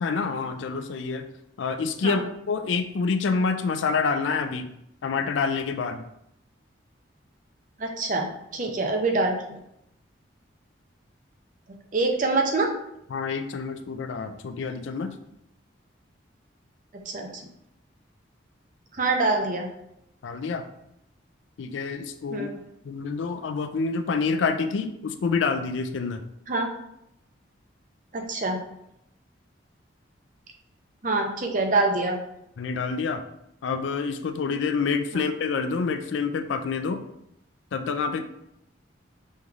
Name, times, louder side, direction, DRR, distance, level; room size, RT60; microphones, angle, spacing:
voice 1, 0.0-1.2 1.6-4.7 5.0-6.0 13.1-15.1 20.2-20.6 21.6-22.5 22.8-26.2 32.6-33.2 33.6-37.0 37.7-38.2, left 5 dB, 75° left, 9 dB, 0.4 m, -27 dB
voice 2, 7.8-8.3 8.5-9.6 11.9-12.7 17.1-17.3 19.0-19.7 22.3-22.5 26.5-26.7 28.1-28.6 31.0-32.2 35.1-35.2, right 3 dB, 40° right, 2 dB, 0.6 m, -25 dB
5.4 x 3.2 x 2.3 m, 0.78 s
head